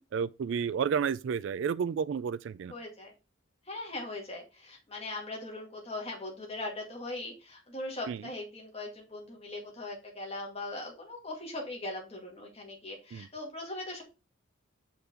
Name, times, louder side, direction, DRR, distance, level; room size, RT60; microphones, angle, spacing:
voice 1, 0.1-2.7 8.1-8.2 13.1-13.3, right 7 dB, 65° right, 0.3 m, -31 dB
voice 2, 2.7-3.1 3.7-14.0, left 2 dB, 30° left, 1.9 m, -40 dB
6.7 x 4.7 x 3.7 m
head